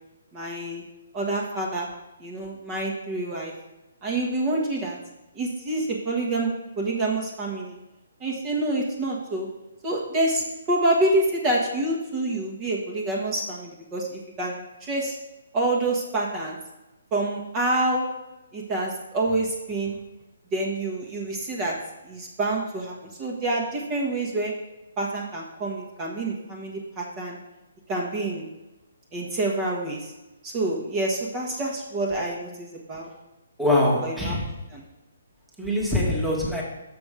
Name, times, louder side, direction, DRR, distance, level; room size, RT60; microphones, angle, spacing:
voice 1, 0.3-0.8 1.1-1.9 2.2-3.5 4.0-5.0 5.3-7.8 8.2-9.5 9.8-15.2 15.5-16.6 17.1-18.0 18.5-20.0 20.5-21.8 22.0-24.5 25.0-27.4 27.9-28.5 29.1-30.1 30.4-33.1 34.0-34.4 34.7-34.8, right 2 dB, 25° right, -2 dB, 1.4 m, -27 dB
voice 2, 33.6-34.5 35.6-36.6, left 1 dB, ahead, -5 dB, 1.5 m, -23 dB
6.7 x 6.0 x 4.9 m, 1.0 s
figure-of-eight pair, 145°, 0 cm